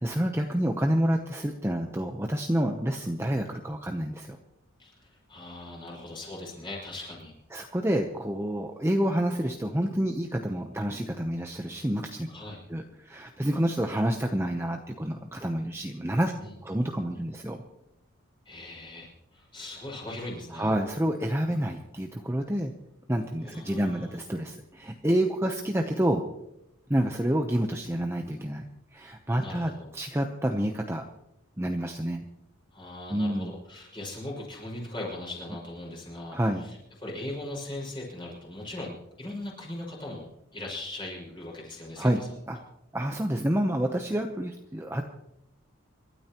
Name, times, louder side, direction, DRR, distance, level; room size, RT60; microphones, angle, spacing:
voice 1, 0.0-4.4 7.5-12.3 12.7-16.3 16.6-17.6 20.5-22.7 23.1-26.2 26.9-28.6 28.9-31.0 31.6-32.2 33.1-33.5 36.3-36.6 42.0-42.2 42.5-42.6 42.9-45.0, right 1 dB, 10° right, 3 dB, 0.8 m, -28 dB
voice 2, 4.8-7.3 12.3-12.6 16.4-16.5 18.5-20.7 23.4-24.2 29.4-29.9 32.7-42.6, left 1 dB, 25° left, -3 dB, 5.6 m, -40 dB
27.5 x 12.5 x 3.0 m, 0.83 s
head